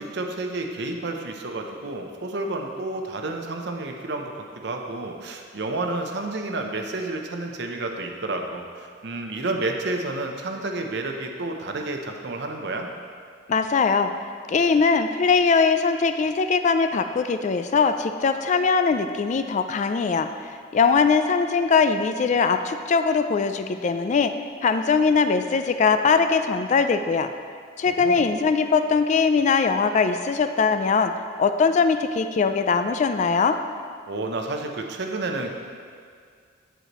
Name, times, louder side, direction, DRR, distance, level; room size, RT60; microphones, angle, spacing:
voice 1, 0.0-12.9 27.8-28.2 34.1-35.6, right 2 dB, 65° right, 3 dB, 0.7 m, -30 dB
voice 2, 13.5-14.1 14.5-20.3 20.7-24.3 24.6-27.3 27.8-31.1 31.4-33.6, left 5 dB, 40° left, 8 dB, 0.3 m, -21 dB
8.1 x 7.6 x 3.0 m, 2.1 s
head